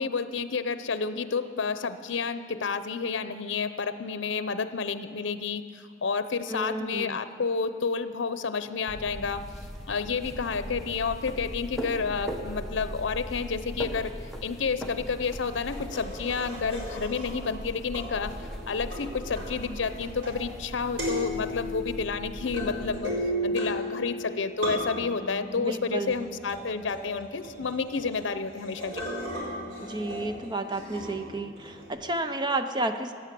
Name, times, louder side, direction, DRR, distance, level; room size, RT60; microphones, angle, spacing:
voice 1, 0.0-9.4 9.9-18.4 18.7-23.1 23.4-29.0, left 5 dB, 85° left, 11 dB, 0.7 m, -30 dB
voice 2, 6.5-7.2 25.6-26.3 29.8-33.1, right 2 dB, 25° right, 8 dB, 0.7 m, -31 dB
sound 1, 8.9-23.0, equal, ahead, 1.1 m, -39 dB
sound 2, 15.6-17.6 17.9-20.7 20.9-31.9, equal, 75° right, 4.2 m, -36 dB
16.0 x 8.9 x 7.6 m, 2.4 s
head